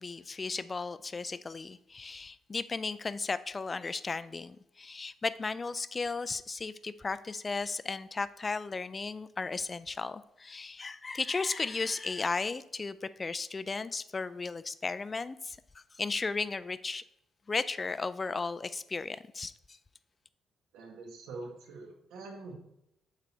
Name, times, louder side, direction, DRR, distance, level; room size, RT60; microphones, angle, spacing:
voice 1, 0.0-15.6 16.0-17.0 17.5-19.5, left 4 dB, 30° left, 0.3 m, -35 dB
voice 2, 20.7-22.6, right 3 dB, 90° right, 1.5 m, -44 dB
8.0 x 3.9 x 4.5 m
cardioid pair, 90°, 0 cm